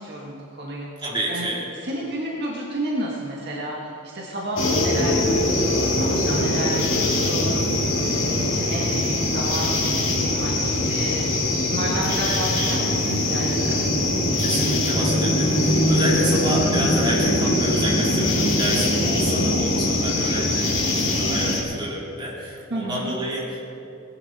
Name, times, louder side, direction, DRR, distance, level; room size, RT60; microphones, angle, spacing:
voice 1, 0.0-0.9 1.3-1.5 1.8-11.2 11.7-13.8 22.7-23.1, right 1 dB, 55° right, -3 dB, 1.8 m, -31 dB
voice 2, 1.0-1.7 12.1-12.8 14.4-23.6, right 1 dB, 20° right, -6 dB, 3.5 m, -29 dB
sound 1, 4.6-21.6, left 1 dB, 70° left, 2.5 m, -22 dB
19.5 x 11.0 x 4.2 m, 2.9 s
head